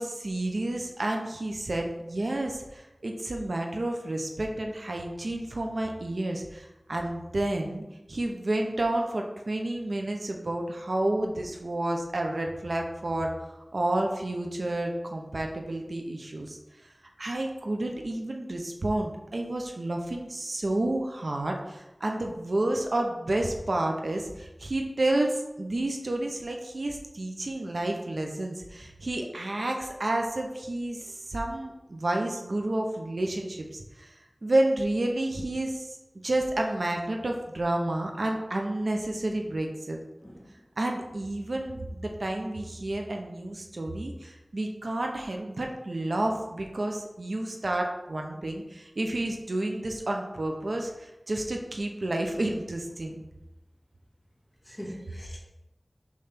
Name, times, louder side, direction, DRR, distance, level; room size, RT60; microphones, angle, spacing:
voice 1, 0.0-13.3 13.7-16.6 17.2-34.1 34.4-36.0 36.2-40.0 40.8-53.2, right 1 dB, 80° right, 2 dB, 0.8 m, -30 dB
voice 2, 40.2-40.6 54.6-55.4, equal, 15° left, -3 dB, 2.2 m, -42 dB
7.0 x 3.3 x 5.8 m, 0.96 s
wide cardioid pair, 50°, 0 cm